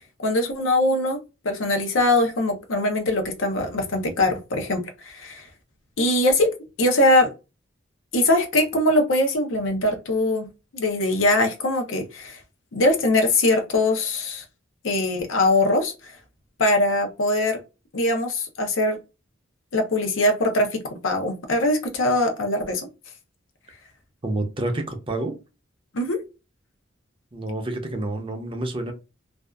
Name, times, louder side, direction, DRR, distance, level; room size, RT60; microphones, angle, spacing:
voice 1, 0.2-1.2 1.4-5.5 6.0-7.3 8.1-10.5 10.7-12.4 12.7-14.4 14.8-16.1 16.6-17.6 17.9-19.0 19.7-22.9 25.9-26.2, left 1 dB, 80° left, 0.7 m, -22 dB
voice 2, 24.2-25.3 27.3-28.9, right 2 dB, 25° right, 0.5 m, -28 dB
2.5 x 2.3 x 2.2 m
head